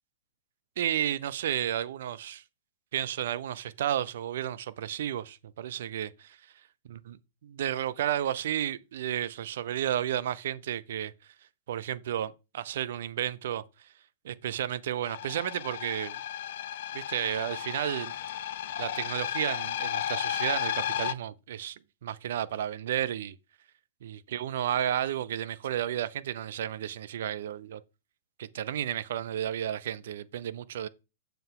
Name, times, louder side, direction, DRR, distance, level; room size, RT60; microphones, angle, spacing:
voice 1, 0.8-2.4 2.9-6.4 6.9-7.2 7.4-11.1 11.7-13.9 14.2-16.2 16.9-18.1 18.8-23.4 24.0-27.8 28.4-30.9, right 10 dB, 60° right, 0.6 m, -32 dB
sound 1, 15.1-21.1, left 10 dB, 60° left, 0.5 m, -34 dB
7.0 x 5.8 x 3.8 m
figure-of-eight pair, 110°, 0 cm